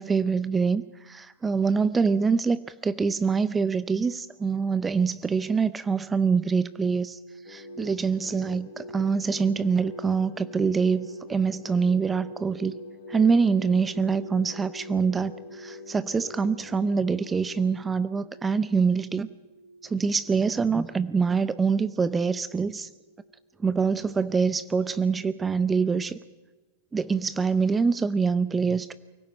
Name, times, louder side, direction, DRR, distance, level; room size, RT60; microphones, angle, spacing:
voice 1, 0.0-7.2 7.5-12.8 13.1-19.3 19.8-22.9 23.6-26.2 26.9-28.9, right 5 dB, 15° right, 16 dB, 0.6 m, -25 dB
sound 1, 6.8-24.2 24.4-24.8, right 2 dB, 90° right, 0.8 m, -46 dB
sound 2, 7.5-17.7, left 15 dB, 45° left, 0.9 m, -48 dB
24.0 x 16.5 x 9.0 m, 1.2 s
figure-of-eight pair, 90°, 0 cm